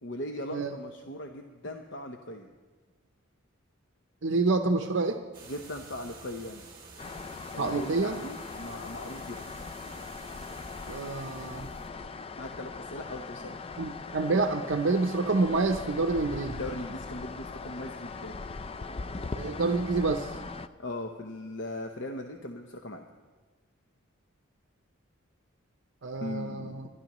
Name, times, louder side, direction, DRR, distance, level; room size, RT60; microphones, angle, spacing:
voice 1, 0.0-2.5 5.5-6.7 7.5-9.4 12.4-13.6 16.5-18.5 20.8-23.1 26.2-26.8, left 1 dB, 60° left, 4 dB, 0.8 m, -39 dB
voice 2, 4.2-5.2 7.6-8.2 10.9-11.7 13.8-16.5 19.3-20.3 26.0-26.9, right 3 dB, 65° right, 5 dB, 0.7 m, -28 dB
sound 1, 5.3-11.9, right 3 dB, 20° right, 2.0 m, -50 dB
sound 2, 7.0-20.7, left 4 dB, 25° left, 0.3 m, -40 dB
27.0 x 11.0 x 3.0 m, 1.3 s
head